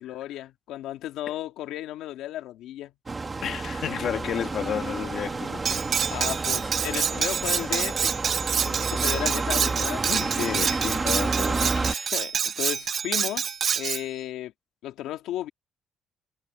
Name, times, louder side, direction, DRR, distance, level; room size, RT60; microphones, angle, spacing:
voice 1, 0.0-2.9 6.1-8.2 8.6-10.0 12.1-14.5 14.8-15.5, left 13 dB, 85° left, 2.6 m, -34 dB
sound 1, 3.1-11.9, right 3 dB, 20° right, 1.6 m, -30 dB
voice 2, 3.4-5.9 10.0-12.1, left 9 dB, 50° left, 1.8 m, -32 dB
Cutlery silverware, 5.7-14.0, right 7 dB, 35° right, 0.6 m, -27 dB
cardioid pair, 170°, 0 cm